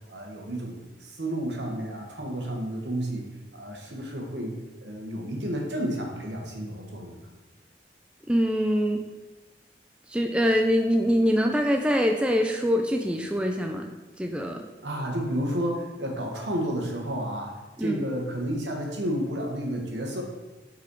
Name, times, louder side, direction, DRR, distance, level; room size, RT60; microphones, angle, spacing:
voice 1, 0.1-3.3 3.5-4.5 4.8-7.2 14.8-17.5 17.8-20.2, right 1 dB, 75° right, 0 dB, 1.3 m, -31 dB
voice 2, 8.3-9.0 10.1-13.9 14.2-14.7 17.8-18.0, equal, 5° right, 3 dB, 0.3 m, -24 dB
5.6 x 4.2 x 4.6 m, 1.1 s
head